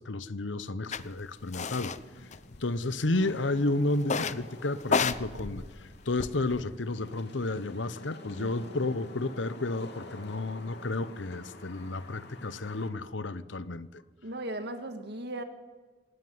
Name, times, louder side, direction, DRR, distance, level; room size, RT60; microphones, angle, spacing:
voice 1, 0.0-1.9 2.6-5.6 6.1-13.9, left 2 dB, 85° left, 1.0 m, -31 dB
sound 1, 0.9-1.0 1.5-2.0 2.3-3.0 4.0-4.4 4.8-6.6, left 5 dB, 40° left, 0.8 m, -31 dB
Wind / Rain, 1.4-12.9, left 2 dB, 65° left, 3.2 m, -49 dB
voice 2, 8.3-8.9 14.2-15.4, right 1 dB, 60° right, 2.1 m, -38 dB
26.5 x 17.5 x 9.4 m
head